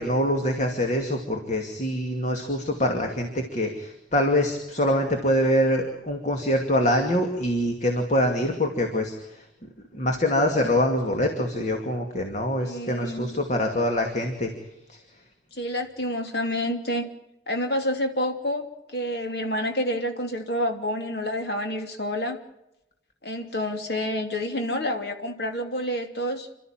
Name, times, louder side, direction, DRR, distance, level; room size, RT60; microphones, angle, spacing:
voice 1, 0.0-9.4 9.9-14.5 14.9-15.0, left 1 dB, 40° left, 3 dB, 2.5 m, -24 dB
voice 2, 12.6-13.3 15.5-17.1 17.5-18.7 18.9-22.4 23.2-26.5, left 1 dB, 60° left, 4 dB, 2.9 m, -28 dB
28.0 x 13.0 x 9.0 m, 0.89 s
head